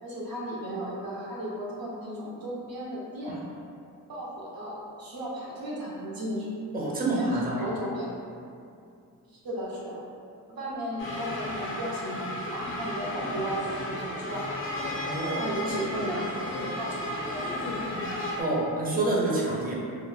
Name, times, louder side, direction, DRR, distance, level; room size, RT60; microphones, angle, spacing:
voice 1, 0.0-3.3 4.1-6.5 7.0-8.1 9.3-10.0 10.5-12.2 12.5-14.6 14.8-14.9 15.4-16.2 16.6-17.5 17.7-18.0, right 1 dB, 75° right, -6 dB, 0.7 m, -35 dB
voice 2, 6.7-7.7 15.0-15.4 18.4-19.7, right 2 dB, 25° right, -4 dB, 0.5 m, -27 dB
sound 1, 11.0-18.4, left 1 dB, 35° left, 0.4 m, -33 dB
2.2 x 2.1 x 3.1 m, 2.5 s
cardioid pair, 90°, 35 cm